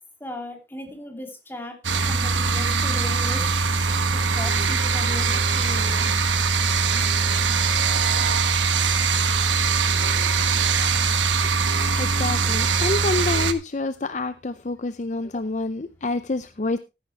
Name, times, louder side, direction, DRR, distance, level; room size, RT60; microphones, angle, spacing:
voice 1, 0.2-1.8 2.0-3.4 4.1-6.2 9.6-9.7, left 1 dB, 10° left, 2.7 m, -37 dB
sound 1, 1.8-13.5, right 5 dB, 90° right, 1.3 m, -22 dB
voice 2, 12.0-16.8, left 2 dB, 40° left, 0.5 m, -27 dB
14.0 x 10.0 x 3.2 m
head